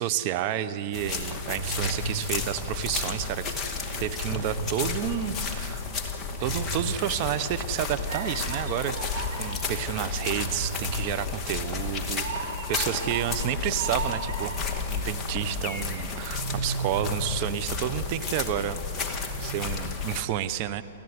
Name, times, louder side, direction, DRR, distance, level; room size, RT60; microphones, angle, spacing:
voice 1, 0.0-3.4 4.0-5.8 6.4-20.8, right 11 dB, 40° right, 12 dB, 0.9 m, -30 dB
sound 1, 0.9-20.2, left 4 dB, 15° left, 2.2 m, -32 dB
sound 2, 1.6-3.4 4.2-5.1 6.4-7.4 8.1-9.7 10.4-14.9 16.2-18.0 19.2-19.5, right 3 dB, 70° right, 5.5 m, -36 dB
29.5 x 13.5 x 9.7 m, 2.7 s
hypercardioid pair, 140°, 0 cm